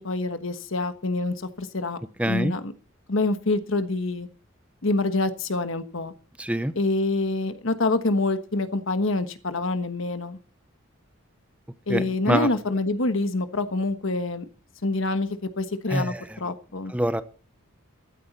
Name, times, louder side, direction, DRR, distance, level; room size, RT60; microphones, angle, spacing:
voice 1, 0.0-2.0 2.2-2.7 3.1-4.3 4.8-6.1 6.7-10.4 11.9-14.5 14.8-16.9, left 2 dB, 65° left, 10 dB, 1.3 m, -26 dB
voice 2, 2.2-2.5 6.4-6.7 11.9-12.5 15.9-16.2 16.9-17.2, right 1 dB, 5° right, 12 dB, 0.7 m, -25 dB
15.0 x 13.0 x 4.2 m, 0.38 s
head